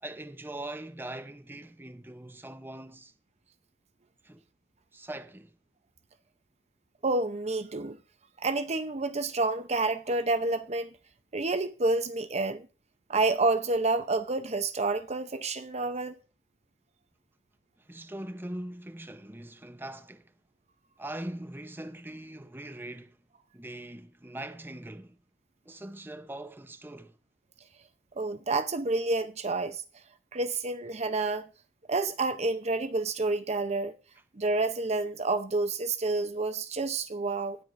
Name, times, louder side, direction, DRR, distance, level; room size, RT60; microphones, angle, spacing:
voice 1, 0.0-3.1 4.2-4.4 4.9-5.6 17.9-20.3 21.0-23.2 23.5-25.2 25.7-27.2, right 1 dB, 15° right, 0.8 m, -41 dB
voice 2, 7.0-8.0 8.4-10.9 11.3-12.7 13.1-16.2 28.2-29.8 30.3-31.4 31.9-33.9 34.4-37.6, right 3 dB, 40° right, 0.8 m, -29 dB
19.0 x 8.2 x 2.6 m
head